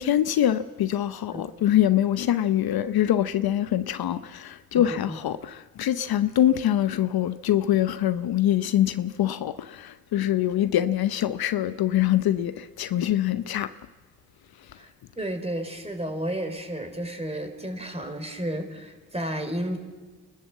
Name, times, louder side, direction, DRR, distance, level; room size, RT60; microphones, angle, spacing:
voice 1, 0.0-13.7, left 12 dB, 65° left, 0.8 m, -24 dB
voice 2, 4.7-5.2 14.8-19.8, right 1 dB, 15° right, 4.3 m, -32 dB
28.5 x 13.0 x 7.5 m
supercardioid pair, 50°, 40 cm